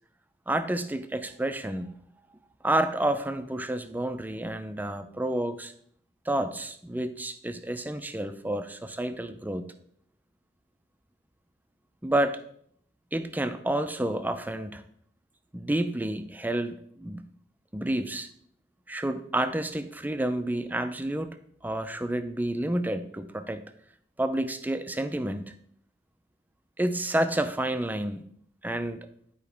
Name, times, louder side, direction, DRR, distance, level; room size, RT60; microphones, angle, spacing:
voice 1, 0.5-1.9 2.6-5.7 6.3-9.7 12.0-12.4 13.1-14.8 15.5-17.3 17.7-18.3 18.9-21.3 21.6-23.7 24.2-25.5 26.8-28.3 28.6-29.0, right 1 dB, 10° right, 9 dB, 0.5 m, -29 dB
10.5 x 4.7 x 3.4 m, 0.64 s
head